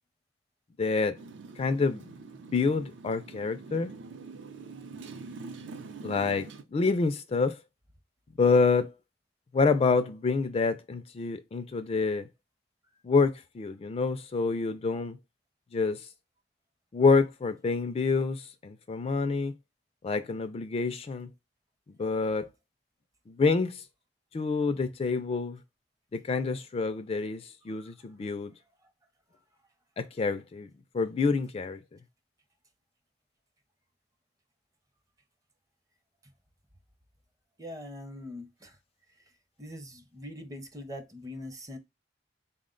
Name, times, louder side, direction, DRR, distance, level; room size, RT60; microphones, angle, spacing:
voice 1, 0.8-1.2 1.6-2.1 2.5-3.9 6.0-7.6 8.4-8.9 9.5-12.3 13.0-15.2 15.7-16.0 16.9-19.5 20.0-21.3 22.0-22.5 23.3-23.8 24.3-25.6 26.1-28.5 30.0-31.8, left 4 dB, 35° left, 0.3 m, -27 dB
Motorcycle, 1.1-6.6, right 4 dB, 70° right, 0.5 m, -45 dB
voice 2, 37.6-38.8 39.6-41.8, left 1 dB, 20° right, 0.6 m, -42 dB
4.1 x 2.1 x 3.7 m
head